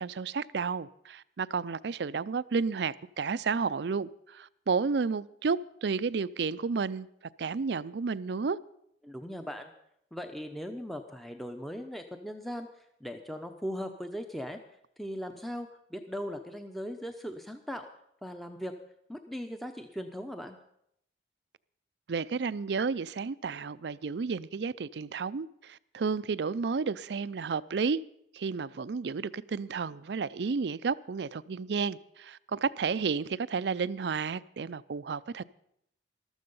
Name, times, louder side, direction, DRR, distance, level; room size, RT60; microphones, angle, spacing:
voice 1, 0.0-7.1 7.4-8.6 22.1-28.0 28.3-35.4, right 5 dB, 65° right, 0.5 m, -32 dB
voice 2, 9.0-9.7 10.1-14.6 15.0-17.9 18.2-18.7 19.1-20.6, equal, ahead, 0.7 m, -39 dB
14.5 x 13.0 x 5.4 m
head